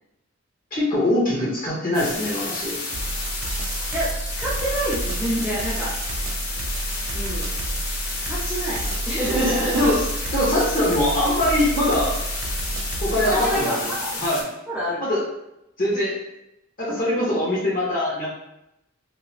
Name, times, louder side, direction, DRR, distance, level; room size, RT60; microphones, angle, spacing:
voice 1, 0.7-2.8 9.3-10.0 10.3-12.1 13.0-13.9 14.2-14.4 15.0-15.2 15.8-16.2 16.8-18.3, left 1 dB, 45° left, -6 dB, 1.1 m, -22 dB
sound 1, 1.9-14.4, left 3 dB, 90° left, 0.8 m, -31 dB
sound 2, 2.9-13.6, right 2 dB, 85° right, 0.4 m, -30 dB
voice 2, 3.9-5.9 6.5-6.6 7.1-7.6 8.1-10.0 13.3-14.1 14.7-15.0, right 1 dB, 5° right, -9 dB, 0.6 m, -27 dB
2.8 x 2.2 x 3.1 m, 0.85 s
head